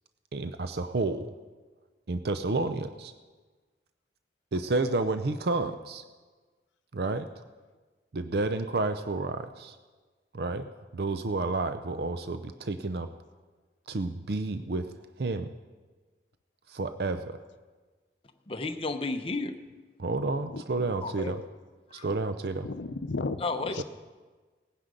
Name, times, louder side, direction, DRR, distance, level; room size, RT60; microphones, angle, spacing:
voice 1, 0.3-1.3 2.1-3.1 4.5-6.0 6.9-7.3 8.1-9.8 10.3-13.1 13.9-14.9 15.2-15.5 16.7-17.4 20.0-21.4 22.0-22.7 23.8-23.9, right 3 dB, 60° right, 0.5 m, -30 dB
voice 2, 18.5-19.6 21.0-21.4 21.9-22.1 23.4-23.8, left 3 dB, 30° left, 0.8 m, -32 dB
voice 3, 20.5-20.9 22.6-23.4 23.7-23.8, left 3 dB, 85° left, 0.6 m, -34 dB
18.5 x 9.8 x 5.2 m
head